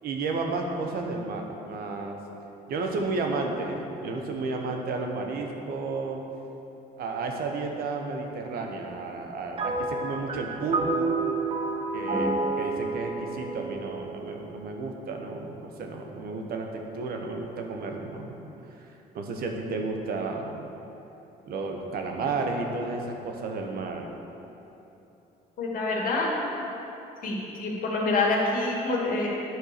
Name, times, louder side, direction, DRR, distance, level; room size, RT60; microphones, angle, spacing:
voice 1, 0.0-2.2 2.7-6.2 7.0-11.1 11.9-18.4 18.8-18.9 19.1-20.6 21.5-24.1, right 3 dB, 65° right, 3 dB, 1.1 m, -32 dB
sound 1, 9.6-15.1, right 3 dB, 30° right, 0.8 m, -30 dB
voice 2, 25.6-26.3 27.2-29.3, left 3 dB, 55° left, -3 dB, 2.0 m, -27 dB
9.5 x 4.6 x 6.7 m, 3.0 s
cardioid pair, 110°, 17 cm